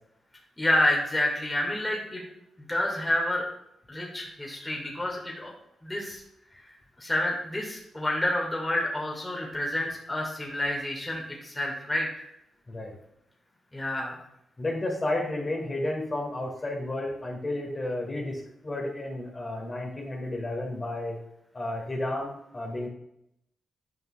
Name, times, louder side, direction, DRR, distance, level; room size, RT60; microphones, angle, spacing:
voice 1, 0.6-2.2 2.7-3.5 3.9-5.5 5.8-6.2 7.0-12.2 13.7-14.2, left 1 dB, 15° left, -1 dB, 1.7 m, -29 dB
voice 2, 14.6-21.2 21.5-22.9, left 1 dB, 35° left, -1 dB, 1.8 m, -32 dB
9.1 x 5.4 x 2.2 m, 0.79 s
cardioid pair, 60°, 0 cm